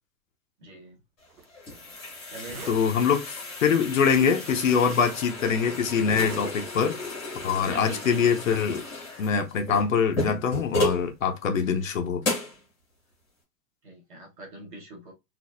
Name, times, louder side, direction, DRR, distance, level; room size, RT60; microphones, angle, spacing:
voice 1, 0.6-1.0 2.3-2.6 7.6-8.3 13.8-15.1, right 1 dB, 30° right, 1.2 m, -42 dB
sound 1, 1.2-11.1 11.6-11.7 12.2-12.6, left 2 dB, 5° left, 0.9 m, -33 dB
Zipper (clothing), 1.3-1.5 2.0-2.1 2.3-2.9 3.7-3.8 4.8-4.9 5.9-6.4 6.8-7.1, right 6 dB, 65° right, 0.9 m, -42 dB
voice 2, 2.7-7.0 7.4-8.8 9.2-12.2, left 6 dB, 50° left, 0.6 m, -24 dB
4.1 x 2.5 x 2.5 m
hypercardioid pair, 180°, 50 cm